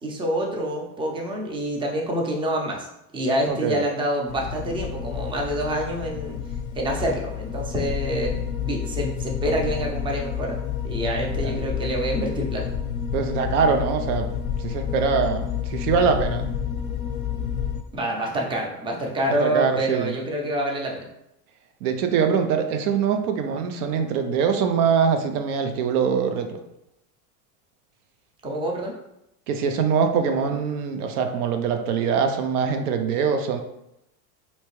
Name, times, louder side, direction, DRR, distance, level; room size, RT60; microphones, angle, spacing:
voice 1, 0.0-2.9 3.1-6.4 6.8-10.6 10.8-12.7 17.9-21.1 28.4-28.9, right 1 dB, 10° right, 0 dB, 0.5 m, -27 dB
voice 2, 3.5-3.8 11.3-11.6 13.1-14.3 14.6-16.5 19.4-20.2 21.8-26.6 29.5-33.6, right 6 dB, 85° right, 6 dB, 0.6 m, -23 dB
sound 1, 4.3-17.8, left 8 dB, 45° left, 0.6 m, -29 dB
3.2 x 2.9 x 3.0 m, 0.84 s
supercardioid pair, 115°, 44 cm